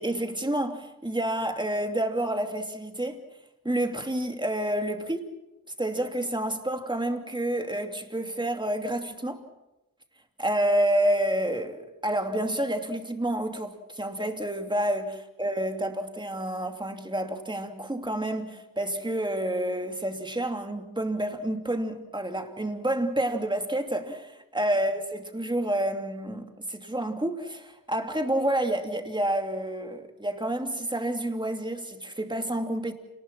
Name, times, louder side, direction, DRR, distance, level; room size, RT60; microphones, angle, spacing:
voice 1, 0.0-3.2 3.6-5.3 5.8-9.4 10.4-25.0 25.3-32.9, right 1 dB, 15° right, 2.8 m, -29 dB
28.0 x 20.0 x 6.1 m
wide cardioid pair, 75°, 34 cm